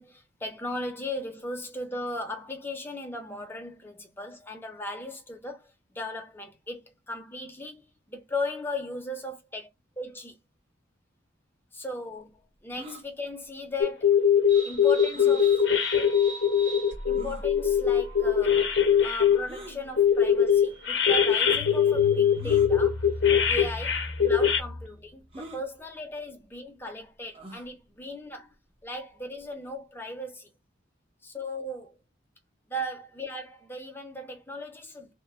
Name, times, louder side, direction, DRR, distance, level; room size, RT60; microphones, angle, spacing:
voice 1, 0.0-9.7 10.0-10.4 11.7-14.2 14.6-15.7 15.9-16.1 17.1-23.1 23.5-28.5 28.8-30.5 31.2-32.0 32.7-35.1, left 1 dB, 10° left, 0.7 m, -37 dB
sound 1, 12.7-13.0 15.1-15.4 16.2-16.3 17.2-17.4 19.5-19.8 20.8-20.9 22.4-22.7 23.6-23.8 24.0-24.1 25.3-25.6 27.3-27.7, equal, 30° right, 0.9 m, -43 dB
sound 2, 13.8-19.4 20.0-24.6, left 8 dB, 60° left, 0.7 m, -21 dB
sound 3, 14.5-25.1, left 2 dB, 65° right, 2.2 m, -39 dB
3.3 x 2.2 x 3.2 m
head